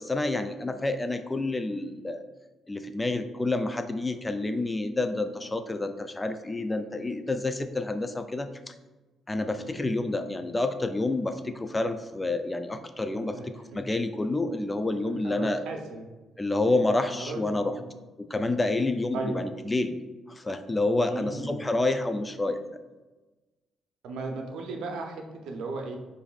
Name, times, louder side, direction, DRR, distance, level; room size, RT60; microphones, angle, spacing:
voice 1, 0.0-2.2 2.7-8.7 9.3-15.6 16.4-17.8 18.3-20.0 20.3-22.6, left 2 dB, 20° left, 8 dB, 0.3 m, -28 dB
voice 2, 13.1-13.8 15.0-16.1 16.7-16.8 17.2-17.8 19.1-19.4 21.1-21.6 24.0-26.0, right 3 dB, 80° right, 2 dB, 0.6 m, -36 dB
7.0 x 2.6 x 2.3 m, 1.2 s
cardioid pair, 90°, 0 cm